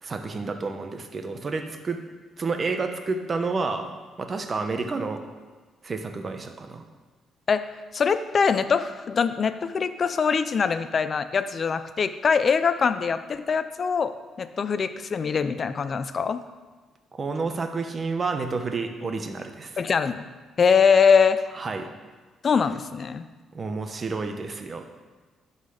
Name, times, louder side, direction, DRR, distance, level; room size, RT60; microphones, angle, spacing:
voice 1, 0.0-2.0 2.4-3.9 4.2-5.2 5.8-6.8 17.1-19.7 21.5-21.9 23.5-24.8, right 4 dB, 35° right, 6 dB, 0.9 m, -30 dB
voice 2, 7.9-16.4 19.8-20.2 20.6-21.4 22.4-23.2, left 6 dB, 45° left, 12 dB, 0.5 m, -23 dB
11.5 x 4.1 x 4.9 m, 1.3 s
cardioid pair, 90°, 0 cm